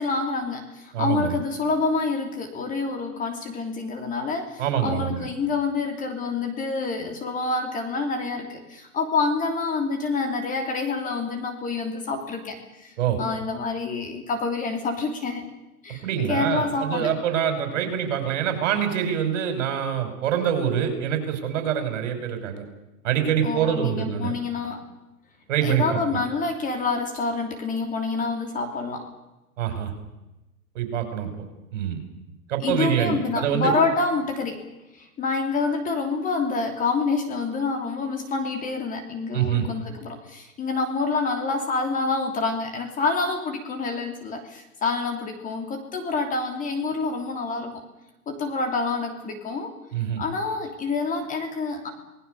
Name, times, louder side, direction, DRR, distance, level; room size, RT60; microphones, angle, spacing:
voice 1, 0.0-15.5 15.8-17.1 23.4-24.8 25.6-29.1 32.6-34.6 35.0-47.8 48.3-49.7 50.2-51.9, left 4 dB, 20° left, 4 dB, 3.1 m, -27 dB
voice 2, 0.9-1.3 4.6-5.3 13.0-13.2 16.0-22.6 23.0-24.3 25.5-26.0 29.6-29.9 30.7-31.3 31.7-32.0 32.5-33.7 39.3-39.7 49.9-50.2, right 9 dB, 55° right, 6 dB, 6.3 m, -25 dB
28.0 x 19.5 x 6.9 m, 0.98 s
hypercardioid pair, 140°, 44 cm